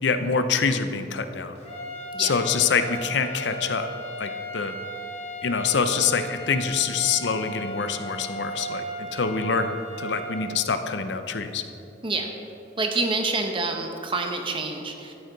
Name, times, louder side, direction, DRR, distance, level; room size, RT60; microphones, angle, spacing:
voice 1, 0.0-1.5 2.2-3.9 4.2-4.7 5.4-11.6, left 5 dB, 70° left, 9 dB, 0.7 m, -25 dB
sound 1, 1.6-10.5, right 1 dB, 35° left, 1.6 m, -36 dB
voice 2, 12.8-15.1, right 3 dB, 30° right, 3 dB, 0.9 m, -27 dB
13.5 x 9.4 x 4.0 m, 2.8 s
head